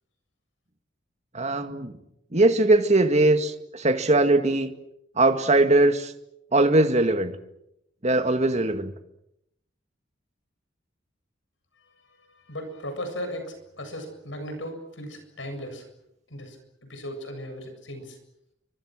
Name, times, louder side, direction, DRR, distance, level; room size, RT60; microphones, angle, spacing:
voice 1, 1.3-1.9 2.3-4.7 5.2-6.1 6.5-7.3 8.0-8.9, right 2 dB, 40° right, 8 dB, 2.0 m, -20 dB
voice 2, 12.5-15.8 16.3-18.2, equal, 90° left, 7 dB, 7.7 m, -37 dB
30.0 x 25.0 x 6.4 m, 0.81 s
head